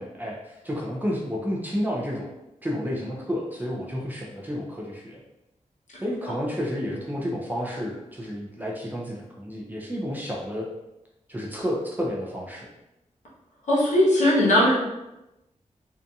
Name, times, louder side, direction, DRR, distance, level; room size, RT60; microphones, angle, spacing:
voice 1, 0.0-2.3 2.6-5.2 6.0-10.7 11.3-12.7, equal, 15° right, -3 dB, 0.4 m, -31 dB
voice 2, 13.7-14.7, left 1 dB, 75° left, -6 dB, 1.0 m, -19 dB
2.7 x 2.5 x 2.3 m, 0.93 s
wide cardioid pair, 180°, 13 cm